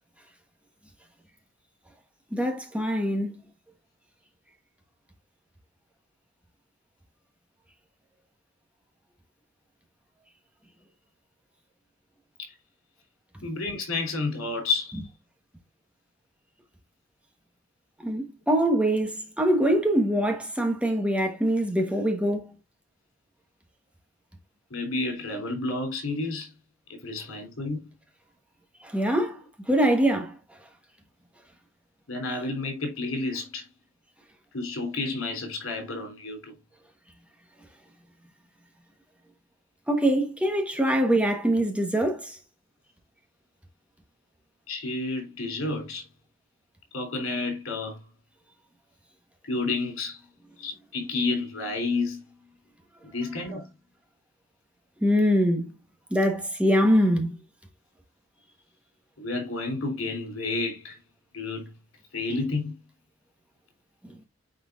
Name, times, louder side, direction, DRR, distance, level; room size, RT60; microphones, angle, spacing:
voice 1, 2.3-3.4 18.0-22.5 28.8-29.4 29.7-30.3 39.9-42.4 55.0-55.7 56.1-57.4, equal, 5° right, 1.1 m, -23 dB
voice 2, 13.4-15.0 24.7-26.5 26.9-27.8 32.1-33.6 34.5-36.5 44.7-46.1 46.9-48.0 49.5-50.2 50.6-52.2 53.1-53.6 59.2-61.0 61.3-61.7 62.1-62.7, left 3 dB, 80° left, 3.3 m, -30 dB
9.2 x 4.4 x 2.4 m
head